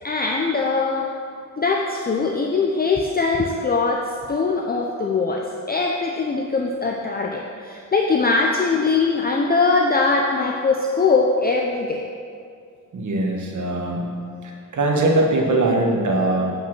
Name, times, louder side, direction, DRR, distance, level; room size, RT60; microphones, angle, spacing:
voice 1, 0.0-1.1 1.6-12.1, left 4 dB, 25° left, 1 dB, 0.6 m, -21 dB
voice 2, 12.9-14.1 14.4-16.5, right 2 dB, 60° right, 0 dB, 1.5 m, -21 dB
8.7 x 5.5 x 6.0 m, 2.2 s
cardioid pair, 110°, 34 cm